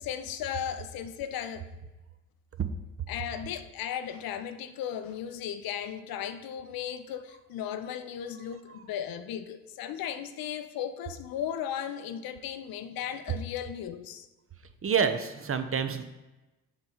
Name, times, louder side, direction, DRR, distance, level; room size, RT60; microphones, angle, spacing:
voice 1, 0.0-1.7 3.1-14.3, left 9 dB, 60° left, 0.7 m, -36 dB
voice 2, 14.8-16.0, right 6 dB, 35° right, 0.7 m, -27 dB
7.2 x 3.5 x 5.4 m
hypercardioid pair, 55°, 40 cm